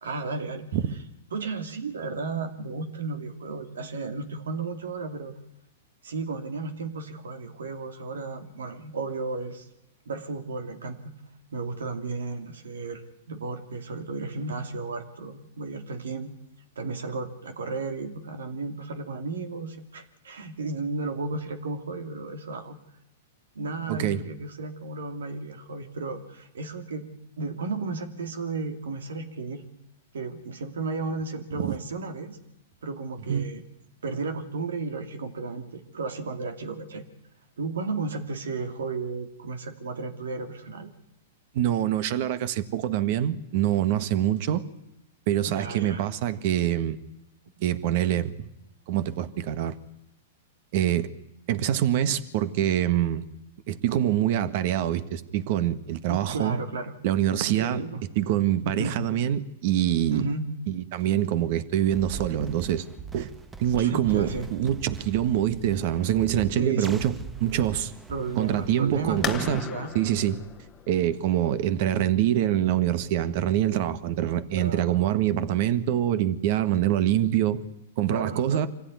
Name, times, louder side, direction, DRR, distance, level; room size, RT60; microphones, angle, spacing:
voice 1, 0.0-0.7 1.3-5.3 6.0-9.7 10.1-11.1 11.5-13.0 13.3-16.3 16.8-22.8 23.5-27.1 27.4-29.6 30.1-32.4 32.8-33.6 34.0-37.0 37.6-40.9 45.4-46.0 56.1-57.0 57.6-58.0 58.6-58.9 60.1-60.5 63.8-64.5 66.6-67.0 68.1-69.9 74.5-74.9 78.1-78.7, right 3 dB, 85° right, 2.7 m, -33 dB
voice 2, 23.9-24.2 31.6-31.8 33.3-33.5 41.5-44.6 45.3-47.0 47.6-48.5 48.9-49.7 50.7-51.1 51.5-53.2 53.7-56.6 57.0-57.8 58.1-60.2 60.7-62.8 63.1-63.3 63.6-67.1 67.4-67.9 68.4-69.7 69.9-70.4 70.9-77.6 78.0-78.7, right 11 dB, 55° right, 1.6 m, -25 dB
sound 1, 61.8-69.6, right 6 dB, 15° right, 1.1 m, -41 dB
sound 2, 69.2-74.7, left 9 dB, 25° left, 1.2 m, -39 dB
25.5 x 16.0 x 9.6 m
hypercardioid pair, 130°, 0 cm